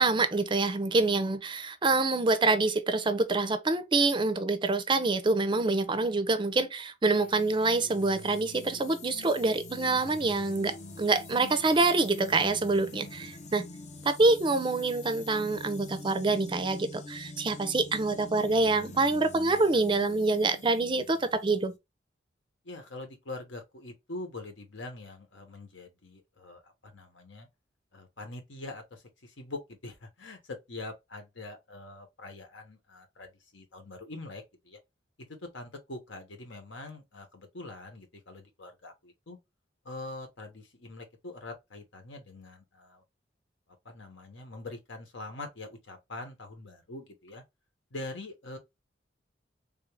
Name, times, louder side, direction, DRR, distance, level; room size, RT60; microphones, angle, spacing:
voice 1, 0.0-13.6 14.0-21.7, right 3 dB, 25° right, 0.4 m, -26 dB
sound 1, 7.1-21.8, left 2 dB, 40° left, 0.5 m, -45 dB
voice 2, 22.6-27.5 27.9-34.8 35.4-39.4 39.8-43.0 43.8-47.4 47.9-48.6, left 2 dB, 80° left, 1.1 m, -43 dB
3.5 x 2.5 x 3.3 m
head